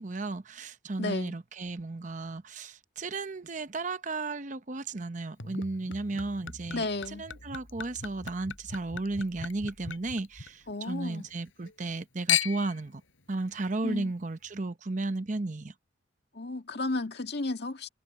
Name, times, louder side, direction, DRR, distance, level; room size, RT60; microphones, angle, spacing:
voice 1, 0.0-13.0 13.3-15.7, right 2 dB, 40° right, 0.8 m, -34 dB
voice 2, 1.0-1.4 6.7-7.3 10.7-11.3 13.8-14.1 16.3-17.9, left 2 dB, 55° left, 2.0 m, -33 dB
Chink clink / Liquid, 5.4-10.9 11.2-11.9 12.3-12.8 13.5-13.6, left 9 dB, 85° left, 5.3 m, -35 dB
head